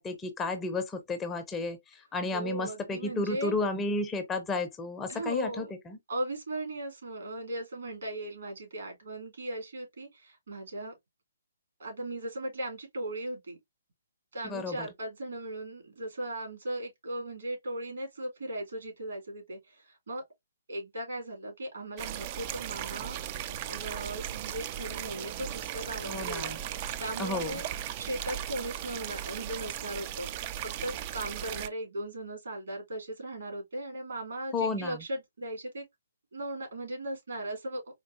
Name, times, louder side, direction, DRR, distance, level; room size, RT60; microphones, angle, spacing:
voice 1, 0.0-1.8 2.1-6.0 14.4-14.9 26.1-26.6 27.2-27.6 34.5-35.0, left 3 dB, 15° left, 0.6 m, -32 dB
voice 2, 2.3-3.6 5.1-5.7 6.1-10.9 11.8-13.6 14.3-20.2 20.7-23.2 23.5-27.6 28.0-30.3 30.6-35.8 36.3-37.8, right 1 dB, 70° right, 2.3 m, -37 dB
sound 1, 22.0-31.7, right 11 dB, 35° right, 0.3 m, -37 dB
4.4 x 2.6 x 2.5 m
figure-of-eight pair, 135°, 0 cm